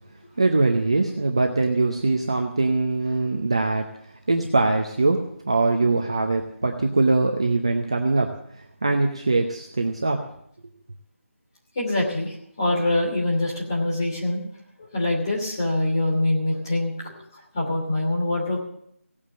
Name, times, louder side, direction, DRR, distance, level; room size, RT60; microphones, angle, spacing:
voice 1, 0.4-3.9 4.3-8.3 8.8-10.2, right 3 dB, 25° right, 3 dB, 0.7 m, -22 dB
voice 2, 11.7-14.4 14.9-17.1 17.5-18.6, left 1 dB, 15° left, -4 dB, 2.8 m, -24 dB
17.0 x 8.6 x 7.5 m, 0.72 s
figure-of-eight pair, 180°, 8 cm